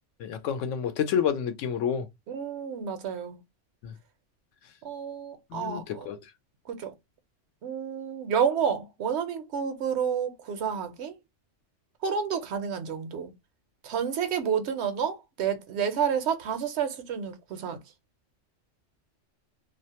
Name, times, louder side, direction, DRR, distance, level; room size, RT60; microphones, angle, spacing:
voice 1, 0.2-2.1 3.8-3.9 5.5-6.2, left 8 dB, 85° left, 0.9 m, -29 dB
voice 2, 2.3-3.4 4.8-6.1 6.7-6.9 7.6-11.2 12.0-13.3 13.8-17.8, right 7 dB, 70° right, 0.8 m, -30 dB
2.4 x 2.0 x 2.7 m
omnidirectional pair, 1.2 m